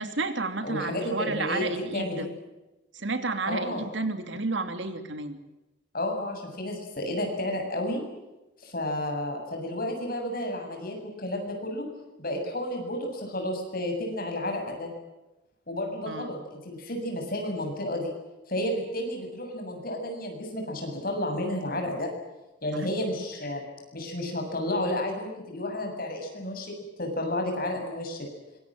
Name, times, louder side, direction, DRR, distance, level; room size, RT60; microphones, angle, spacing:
voice 1, 0.0-2.3 2.9-5.4 16.1-16.4 22.7-22.9, right 3 dB, 65° right, 8 dB, 2.8 m, -31 dB
voice 2, 0.6-2.3 3.5-3.8 5.9-8.0 8.6-11.9 12.2-14.9 15.7-18.1 18.5-22.1 22.6-23.6 23.9-28.3, left 1 dB, 45° left, 3 dB, 7.5 m, -31 dB
25.5 x 23.0 x 7.6 m, 1.0 s
head